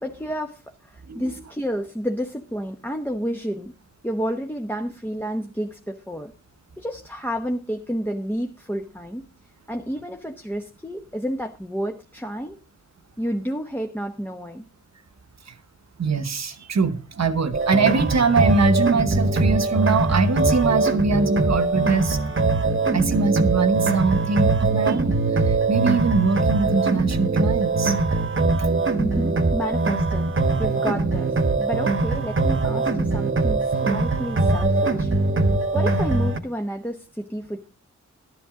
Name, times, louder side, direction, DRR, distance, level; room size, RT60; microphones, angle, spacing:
voice 1, 0.0-3.7 4.0-6.3 6.8-9.3 9.7-12.6 13.2-14.7 29.0-30.3 30.6-35.1 35.7-37.7, equal, 5° left, 0.9 m, -30 dB
voice 2, 16.0-22.2 22.9-28.0, right 4 dB, 65° right, 1.2 m, -23 dB
sound 1, 17.5-36.4, right 3 dB, 45° right, 1.2 m, -22 dB
13.0 x 11.0 x 3.7 m
wide cardioid pair, 110°, 29 cm